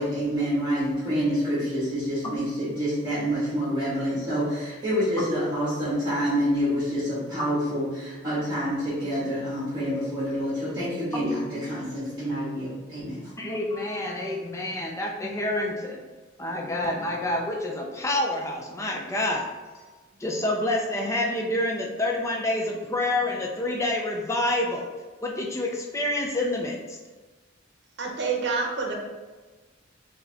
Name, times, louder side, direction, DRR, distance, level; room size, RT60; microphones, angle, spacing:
voice 1, 0.0-13.2, equal, 25° right, -12 dB, 1.4 m, -27 dB
voice 2, 11.1-11.5 13.4-16.0 16.4-19.5 19.7-19.9 20.2-24.8 25.2-27.0, left 1 dB, 15° left, -1 dB, 0.4 m, -28 dB
voice 3, 28.0-29.0, right 4 dB, 60° right, 0 dB, 0.8 m, -27 dB
4.6 x 2.7 x 3.3 m, 1.3 s
head